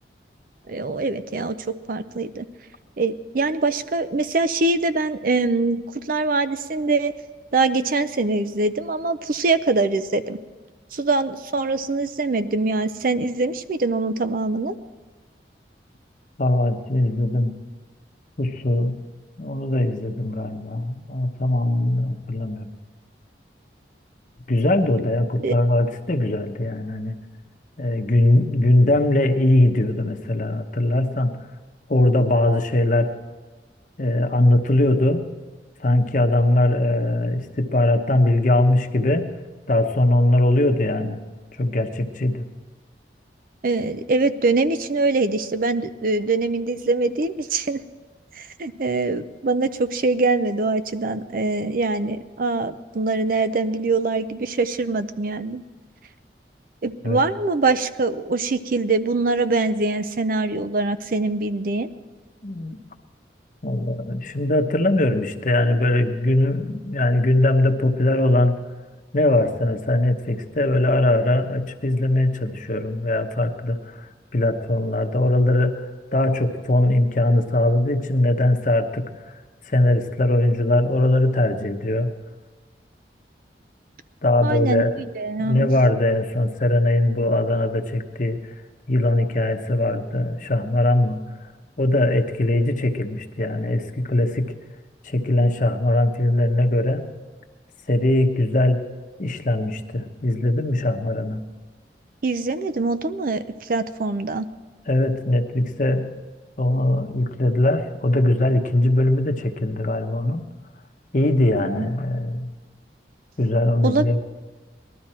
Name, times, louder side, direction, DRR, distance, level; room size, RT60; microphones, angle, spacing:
voice 1, 0.7-2.5 3.0-5.8 6.1-7.1 7.5-10.4 10.9-14.7 25.4-25.5 43.6-47.8 48.4-55.6 56.8-61.9 84.4-84.8 85.2-85.7 102.2-104.5 111.6-111.9 113.8-114.1, right 3 dB, 50° right, 11 dB, 0.6 m, -23 dB
voice 2, 16.4-17.6 18.4-19.0 19.4-22.7 24.5-27.2 27.8-31.4 31.9-33.1 34.0-35.3 35.8-39.3 39.7-41.2 41.5-42.5 57.0-57.2 62.4-62.8 63.6-68.6 69.1-79.4 79.7-82.1 84.2-85.0 85.4-88.5 88.9-91.5 91.8-94.5 95.0-97.1 97.9-98.8 99.2-101.4 104.9-106.1 106.6-110.4 111.1-112.5 113.4-114.2, left 1 dB, 45° left, 6 dB, 1.0 m, -21 dB
19.5 x 12.5 x 4.4 m, 1.3 s
head